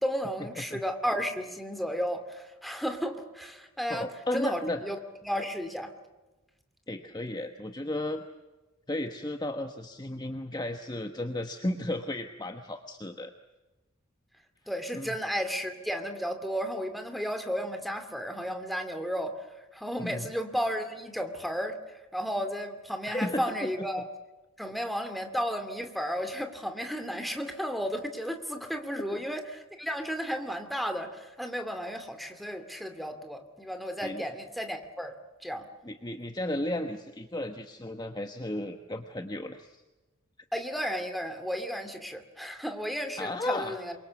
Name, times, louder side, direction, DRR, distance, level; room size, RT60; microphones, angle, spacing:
voice 1, 0.0-4.1 4.3-5.0 5.2-5.9 14.7-19.3 19.7-24.0 24.6-35.2 35.4-35.7 40.5-43.9, equal, ahead, 7 dB, 2.5 m, -33 dB
voice 2, 3.9-4.8 6.9-8.2 8.9-13.3 14.9-15.2 20.0-20.3 23.1-23.9 34.0-34.2 35.8-39.8 43.2-43.7, left 1 dB, 20° left, 6 dB, 1.2 m, -34 dB
27.5 x 23.5 x 7.1 m, 1.1 s
head